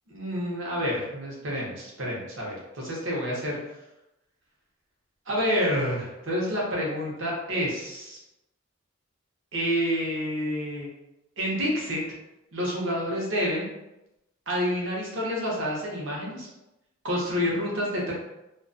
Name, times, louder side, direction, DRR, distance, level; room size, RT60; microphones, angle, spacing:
voice 1, 0.1-3.6 5.3-8.2 9.5-10.9 11.4-12.0 12.5-13.7 14.5-16.5 17.0-18.1, equal, 70° right, -3 dB, 0.8 m, -28 dB
2.3 x 2.3 x 2.5 m, 0.93 s
head